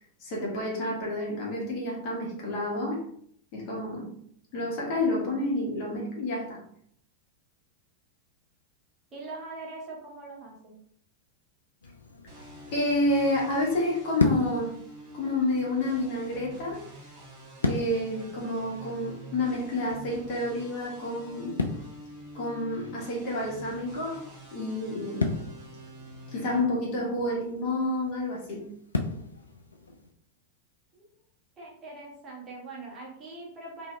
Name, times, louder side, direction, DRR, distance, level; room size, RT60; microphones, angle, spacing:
voice 1, 0.2-3.0 3.5-4.1 4.5-6.6 12.7-14.7 15.1-16.8 17.6-21.7 22.3-24.2 24.5-25.4 26.3-28.7, left 1 dB, 45° left, -3 dB, 1.3 m, -29 dB
voice 2, 9.1-10.8 30.9-31.0 31.6-33.9, right 3 dB, 25° right, -3 dB, 1.2 m, -42 dB
sound 1, 11.8-30.1, left 3 dB, 80° left, 0.4 m, -36 dB
sound 2, 12.3-26.6, right 1 dB, 50° right, 1.3 m, -47 dB
2.8 x 2.6 x 3.2 m, 0.65 s
figure-of-eight pair, 90°, 0 cm